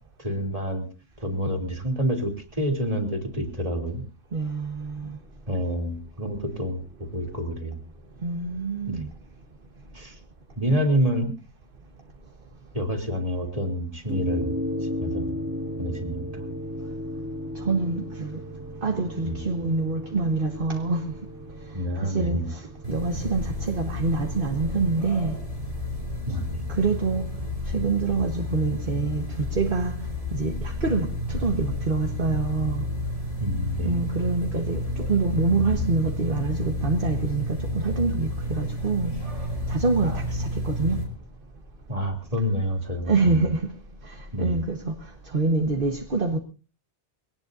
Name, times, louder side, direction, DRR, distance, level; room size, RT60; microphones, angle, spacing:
voice 1, 0.2-0.8 1.2-4.0 5.5-7.8 8.9-9.0 9.9-10.2 10.5-11.3 12.7-14.5 15.0-15.3 15.8-16.5 19.2-19.4 21.7-22.5 26.3-26.6 33.4-34.0 40.0-40.2 41.9-43.4 44.3-44.6, equal, 30° right, 3.3 m, -28 dB
voice 2, 4.3-5.2 8.2-9.1 17.5-18.4 18.8-21.0 22.0-25.4 26.7-27.3 27.7-30.0 30.3-32.8 33.8-34.8 35.1-39.1 39.7-41.0 43.0-43.7 44.0-44.9 45.2-46.4, right 3 dB, 50° right, 1.6 m, -26 dB
sound 1, 14.1-28.6, equal, 10° right, 2.5 m, -36 dB
sound 2, 22.8-41.0, left 2 dB, 80° right, 5.7 m, -31 dB
23.0 x 18.5 x 2.7 m
omnidirectional pair, 1.2 m